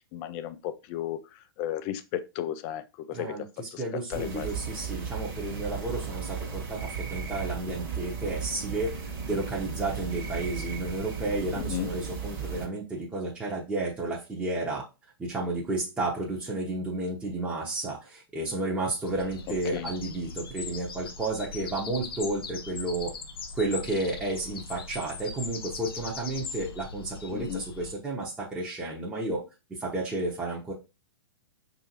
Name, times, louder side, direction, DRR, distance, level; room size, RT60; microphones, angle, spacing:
voice 1, 0.1-1.2 1.6-3.4 3.7-3.8 4.1-4.5 11.6-11.9 19.7-19.9 27.3-27.6, left 11 dB, 35° left, 0.5 m, -34 dB
voice 2, 3.1-14.8 15.2-23.1 23.5-29.4 29.7-30.7, right 2 dB, 10° right, 0.9 m, -32 dB
sound 1, 4.1-12.7, right 5 dB, 30° right, 1.3 m, -35 dB
sound 2, 19.0-27.9, left 4 dB, 65° left, 0.7 m, -40 dB
5.4 x 2.7 x 2.9 m
figure-of-eight pair, 110°, 13 cm